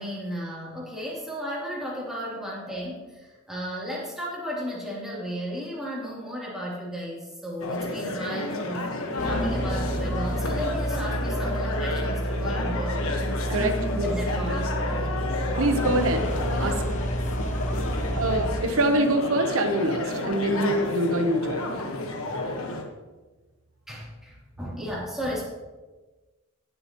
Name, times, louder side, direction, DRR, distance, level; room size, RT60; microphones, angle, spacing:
voice 1, 0.0-8.9 9.2-14.6 23.9-25.4, equal, ahead, -6 dB, 3.1 m, -34 dB
sound 1, 7.6-22.8, left 2 dB, 70° left, 1.4 m, -31 dB
sound 2, 9.2-18.6, right 1 dB, 35° left, 1.0 m, -29 dB
voice 2, 13.5-14.1 15.6-16.2 16.6-16.8 18.2-21.7, right 1 dB, 70° right, 5 dB, 0.9 m, -24 dB
18.0 x 7.8 x 3.0 m, 1.2 s
head